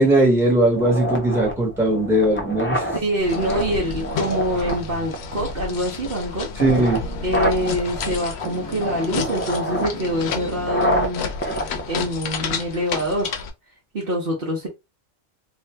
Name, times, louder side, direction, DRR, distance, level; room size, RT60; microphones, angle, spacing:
voice 1, 0.0-2.9 6.6-7.0, right 1 dB, ahead, 1.2 m, -19 dB
sound 1, 0.7-12.7, equal, 15° left, 0.4 m, -28 dB
voice 2, 2.9-6.5 7.2-11.2 11.9-13.3 13.9-14.7, equal, 50° right, 1.1 m, -25 dB
sound 2, 3.2-13.5, left 6 dB, 60° left, 0.8 m, -31 dB
2.8 x 2.5 x 3.2 m
omnidirectional pair, 1.3 m